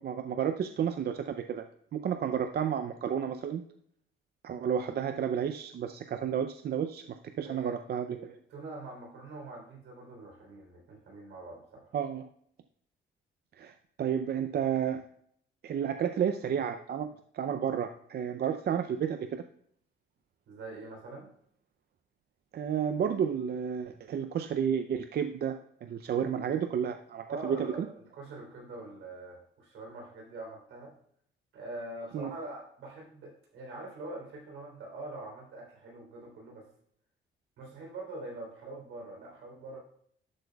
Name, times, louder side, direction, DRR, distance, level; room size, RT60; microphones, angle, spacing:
voice 1, 0.0-1.6 1.9-3.6 4.4-8.4 11.9-12.3 13.6-15.0 15.6-17.1 17.3-19.4 22.5-27.9 32.1-32.3, right 8 dB, 55° right, 8 dB, 0.5 m, -31 dB
voice 2, 7.4-7.8 8.3-11.9 20.5-21.3 27.3-30.9 31.5-36.7 37.6-39.8, right 2 dB, 80° right, 0 dB, 3.6 m, -44 dB
11.5 x 7.9 x 2.3 m, 0.67 s
cardioid pair, 90°, 20 cm